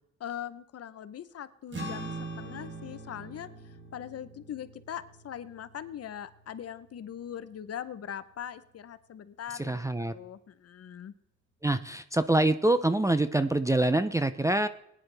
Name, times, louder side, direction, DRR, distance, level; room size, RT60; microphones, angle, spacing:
voice 1, 0.2-11.1, left 9 dB, 55° left, 14 dB, 0.7 m, -41 dB
sound 1, 1.7-8.4, right 2 dB, 40° right, 2.4 m, -43 dB
voice 2, 9.6-10.1 11.6-14.7, right 2 dB, 10° right, 9 dB, 0.4 m, -25 dB
19.5 x 9.8 x 3.3 m, 0.79 s
wide cardioid pair, 135°, 29 cm